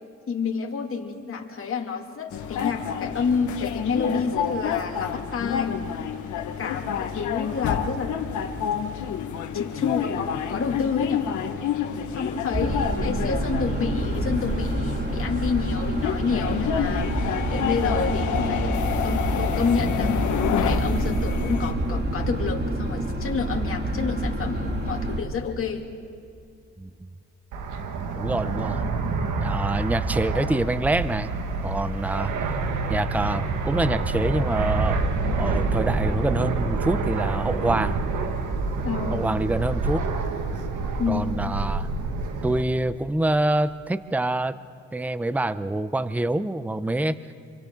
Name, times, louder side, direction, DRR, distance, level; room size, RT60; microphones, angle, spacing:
voice 1, 0.3-5.8 6.4-8.2 9.5-11.3 12.1-18.8 19.0-25.9 38.8-39.3 41.0-41.3, left 5 dB, 45° left, 1 dB, 2.7 m, -29 dB
sound 1, 2.3-21.7, left 8 dB, 75° left, 1.5 m, -29 dB
sound 2, 12.5-25.2, right 1 dB, 35° right, 2.6 m, -27 dB
Fixed-wing aircraft airplane, 27.5-42.6, right 3 dB, 80° right, 1.8 m, -27 dB
voice 2, 28.2-28.8 29.4-31.3 31.6-32.6 32.9-35.0 35.4-38.0 39.1-40.1 41.1-41.9 42.4-44.6 44.9-47.2, right 2 dB, 5° right, 14 dB, 0.6 m, -26 dB
29.0 x 24.0 x 3.8 m, 2.3 s
cardioid pair, 90°, 30 cm